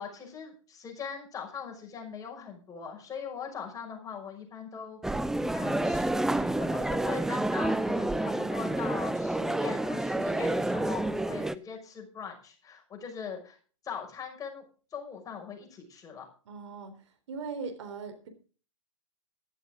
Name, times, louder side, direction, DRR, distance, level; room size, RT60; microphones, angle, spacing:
voice 1, 0.0-5.0 5.3-13.6 13.8-14.6 14.9-16.3, left 6 dB, 20° left, 2 dB, 5.9 m, -41 dB
sound 1, 5.0-11.6, right 1 dB, 5° right, 0.6 m, -29 dB
voice 2, 16.5-18.3, right 4 dB, 65° right, 8 dB, 3.8 m, -40 dB
14.5 x 13.0 x 3.8 m, 0.38 s
figure-of-eight pair, 110°, 17 cm